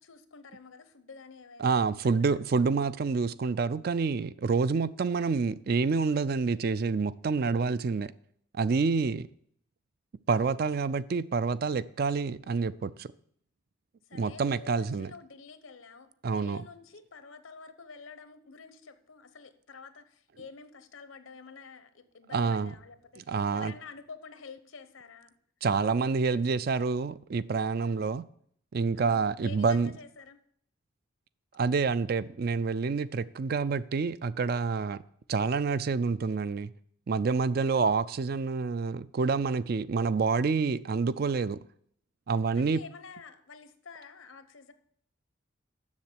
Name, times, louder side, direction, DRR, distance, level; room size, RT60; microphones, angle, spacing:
voice 1, 0.0-1.8 2.3-2.4 9.0-9.3 14.1-25.3 26.3-26.8 27.8-28.1 28.9-30.4 37.6-37.9 42.5-44.7, left 4 dB, 85° left, 0.9 m, -49 dB
voice 2, 1.6-8.1 8.5-9.3 10.3-13.1 14.2-15.1 16.2-16.6 22.3-22.7 23.2-23.7 25.6-28.3 28.7-29.9 31.5-35.0 35.3-36.7 37.1-41.6 42.3-42.8, right 4 dB, 50° right, 0.3 m, -28 dB
7.3 x 6.7 x 8.0 m
head